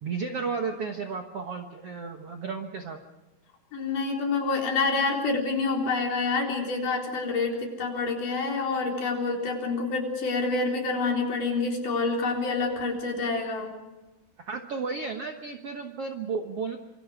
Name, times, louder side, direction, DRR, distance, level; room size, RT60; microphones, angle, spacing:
voice 1, 0.0-3.0 14.4-16.8, right 5 dB, 60° right, 4 dB, 1.6 m, -33 dB
voice 2, 3.7-13.7, left 3 dB, 55° left, 1 dB, 5.4 m, -27 dB
27.0 x 25.5 x 5.0 m, 1.1 s
omnidirectional pair, 4.4 m